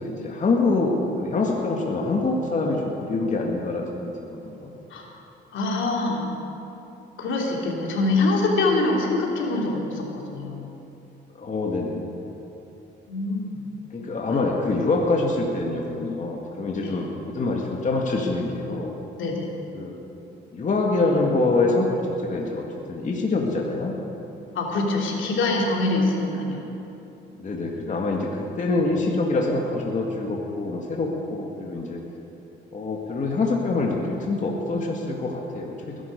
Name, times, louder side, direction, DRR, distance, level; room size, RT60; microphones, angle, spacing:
voice 1, 0.0-4.7 11.3-12.1 13.9-18.9 19.7-20.0 20.5-23.9 27.4-32.0 32.7-36.0, left 3 dB, 40° left, -1 dB, 1.9 m, -25 dB
voice 2, 5.5-6.3 7.2-10.7 13.1-13.6 14.3-14.4 16.8-16.9 19.2-19.5 24.5-26.6, left 2 dB, 75° left, -1 dB, 3.0 m, -24 dB
21.0 x 11.0 x 5.3 m, 2.9 s
cardioid pair, 90°, 20 cm